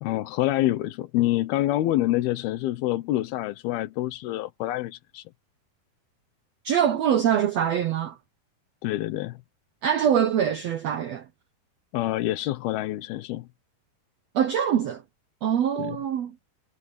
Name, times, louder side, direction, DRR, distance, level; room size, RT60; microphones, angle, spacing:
voice 1, 0.0-5.2 8.8-9.4 11.9-13.5 15.8-16.0, left 15 dB, 85° left, 2.9 m, -26 dB
voice 2, 6.6-8.2 9.8-11.2 14.3-15.0 15.4-16.3, right 9 dB, 85° right, 1.4 m, -24 dB
omnidirectional pair, 4.3 m